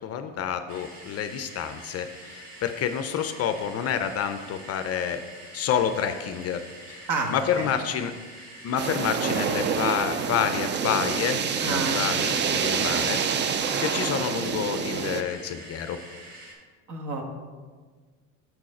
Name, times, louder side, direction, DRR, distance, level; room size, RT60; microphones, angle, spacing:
voice 1, 0.0-5.2 5.5-8.1 8.6-11.4 11.7-16.0, left 8 dB, 40° left, 9 dB, 0.5 m, -29 dB
sound 1, 0.7-16.5, right 1 dB, 80° right, 2.0 m, -45 dB
voice 2, 7.1-7.7 11.6-12.1 16.9-17.2, right 3 dB, 50° right, 2 dB, 1.5 m, -29 dB
sound 2, 8.8-15.2, right 6 dB, 30° right, 0.5 m, -27 dB
6.5 x 6.1 x 4.2 m, 1.5 s
supercardioid pair, 90°, 39 cm